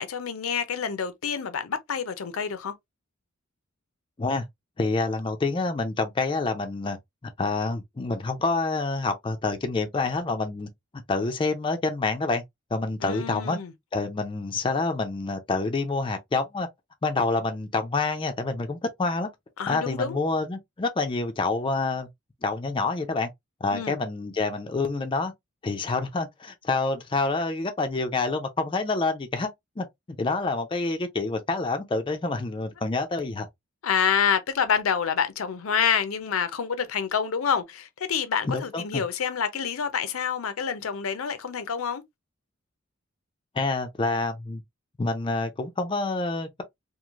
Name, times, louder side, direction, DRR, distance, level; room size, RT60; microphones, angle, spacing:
voice 1, 0.0-2.7 13.0-13.7 19.6-20.2 23.7-24.0 33.8-42.0, left 7 dB, 75° left, 0.5 m, -27 dB
voice 2, 4.8-7.0 7.4-10.7 11.1-12.4 12.7-13.6 13.9-16.7 17.0-19.3 19.7-22.1 22.4-23.3 23.6-25.3 25.6-29.5 29.8-29.9 30.2-33.5 38.5-39.0 43.5-44.6 45.0-46.6, left 3 dB, 25° left, 0.4 m, -27 dB
3.0 x 2.4 x 2.3 m
head